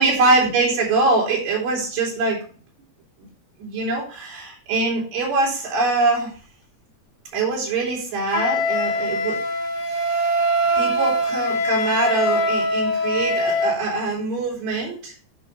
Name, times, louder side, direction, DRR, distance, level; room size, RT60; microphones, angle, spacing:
voice 1, 0.0-2.4 3.6-6.3 7.3-9.4 9.9-10.3 10.8-15.1, right 3 dB, 85° right, -3 dB, 6.0 m, -23 dB
Wind instrument woodwind instrument, 8.3-13.7, equal, 55° left, 3.9 m, -22 dB
13.0 x 5.7 x 3.2 m, 0.41 s
omnidirectional pair, 4.7 m